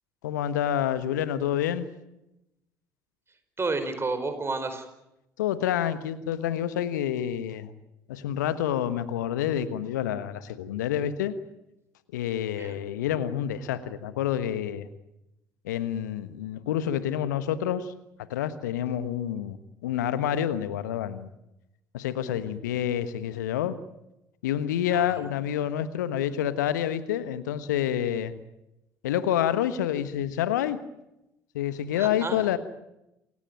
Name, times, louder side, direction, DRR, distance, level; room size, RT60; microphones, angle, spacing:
voice 1, 0.2-1.9 5.4-7.7 8.1-11.3 12.1-14.9 15.6-17.9 18.3-21.3 21.9-23.7 24.4-28.3 29.0-30.8 31.5-32.6, left 10 dB, 75° left, 14 dB, 1.3 m, -28 dB
voice 2, 3.6-4.8 12.5-12.8 24.9-25.0 32.0-32.4, right 3 dB, 25° right, 9 dB, 4.8 m, -31 dB
28.0 x 16.0 x 9.2 m, 0.89 s
figure-of-eight pair, 55°, 10 cm